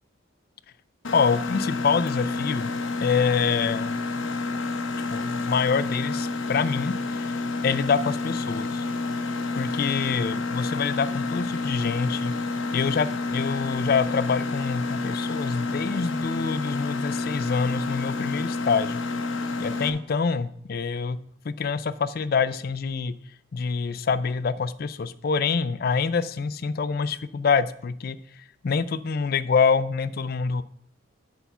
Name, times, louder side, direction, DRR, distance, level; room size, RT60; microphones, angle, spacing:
Mechanisms, 1.0-19.9, left 3 dB, 75° left, 0.9 m, -29 dB
voice 1, 1.1-2.7 3.0-4.0 5.1-7.3 7.6-8.8 9.5-12.3 12.7-19.0 19.6-21.2 21.4-23.1 23.5-28.2 28.6-30.6, left 5 dB, 50° left, 15 dB, 0.4 m, -26 dB
8.2 x 5.7 x 5.5 m, 0.67 s
head